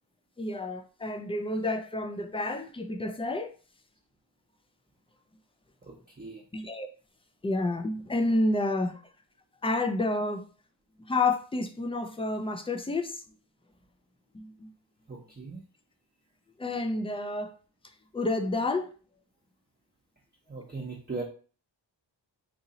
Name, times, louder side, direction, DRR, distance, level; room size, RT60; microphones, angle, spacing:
voice 1, 0.4-3.5 6.5-6.9 7.4-9.0 9.6-10.4 11.1-13.2 14.3-14.7 16.6-17.6 18.1-18.9, left 2 dB, 15° left, 0.4 m, -29 dB
voice 2, 5.8-6.4 15.1-15.6 20.5-21.2, right 3 dB, 20° right, 0.7 m, -39 dB
2.9 x 2.6 x 3.9 m
wide cardioid pair, 100°, 46 cm